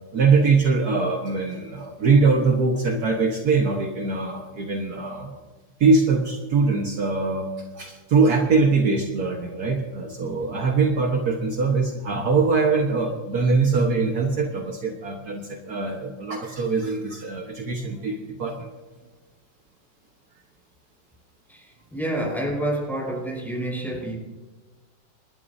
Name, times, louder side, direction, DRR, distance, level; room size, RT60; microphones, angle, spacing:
voice 1, 0.1-5.4 5.8-7.5 7.7-18.7, right 4 dB, 60° right, 1 dB, 1.8 m, -22 dB
voice 2, 21.5-24.2, right 1 dB, ahead, -2 dB, 5.0 m, -28 dB
27.0 x 12.0 x 2.7 m, 1.3 s
omnidirectional pair, 2.0 m